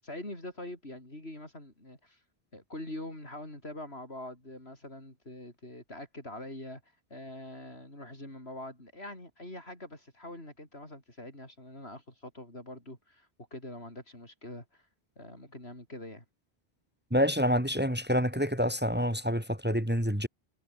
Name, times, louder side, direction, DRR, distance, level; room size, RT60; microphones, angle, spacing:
voice 1, 0.0-2.2 2.5-14.8 15.2-16.2, left 1 dB, 80° left, 8.3 m, -44 dB
voice 2, 17.1-20.3, equal, 10° right, 3.1 m, -27 dB
omnidirectional pair, 1.1 m